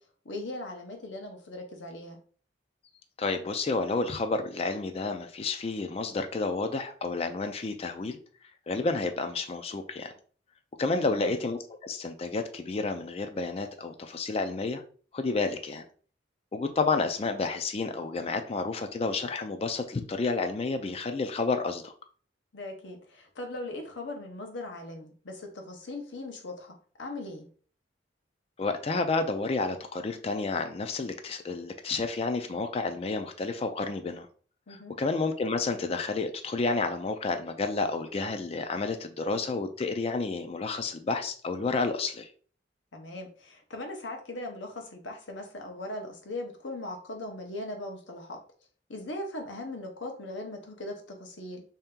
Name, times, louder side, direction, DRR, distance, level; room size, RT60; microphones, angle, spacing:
voice 1, 0.2-2.2 10.8-11.3 22.5-27.5 34.7-34.9 42.9-48.4 48.9-51.6, left 1 dB, 85° left, 3 dB, 0.9 m, -39 dB
voice 2, 3.2-8.2 8.7-10.1 10.8-14.8 15.1-15.8 16.5-21.9 28.6-34.3 34.7-42.3, left 3 dB, 35° left, 7 dB, 0.4 m, -30 dB
3.3 x 2.8 x 3.6 m, 0.43 s
head